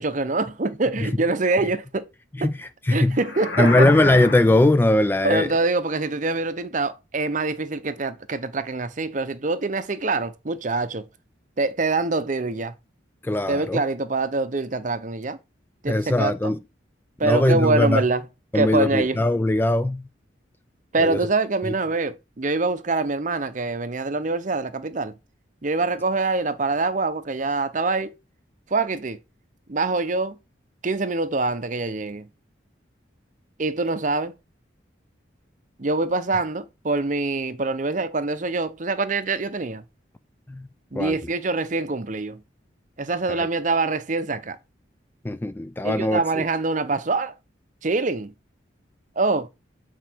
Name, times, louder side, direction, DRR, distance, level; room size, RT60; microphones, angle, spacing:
voice 1, 0.0-2.1 2.4-2.5 2.9-3.7 5.2-11.1 11.6-12.7 13.5-15.4 15.8-16.5 17.2-18.2 18.5-19.2 20.9-25.1 25.6-28.1 28.7-29.2 29.7-30.4 30.8-32.3 33.6-34.3 35.8-39.8 40.9-42.4 43.0-44.6 45.8-47.3 47.8-48.3 49.2-49.5, right 3 dB, 40° right, 0.7 m, -25 dB
voice 2, 2.4-3.2 3.6-5.6 13.2-13.8 15.9-16.6 17.2-18.0 18.5-20.0 21.0-21.2 21.7-21.8 40.5-40.7 40.9-41.2 43.3-43.5 45.2-46.2, left 1 dB, 10° left, 0.3 m, -20 dB
sound 1, 3.2-4.8, left 3 dB, 65° left, 1.9 m, -28 dB
8.2 x 4.5 x 4.4 m
head